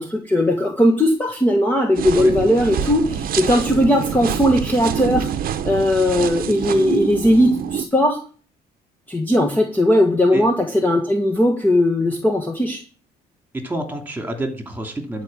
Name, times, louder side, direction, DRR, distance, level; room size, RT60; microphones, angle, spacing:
voice 1, 0.0-5.3 5.6-8.2 9.1-12.8, left 1 dB, 10° left, 2 dB, 1.6 m, -18 dB
sound 1, 1.9-7.8, right 8 dB, 60° right, 1.0 m, -26 dB
voice 2, 13.5-15.2, right 1 dB, 10° right, 4 dB, 3.0 m, -28 dB
11.5 x 5.0 x 7.5 m, 0.39 s
cardioid pair, 110°, 17 cm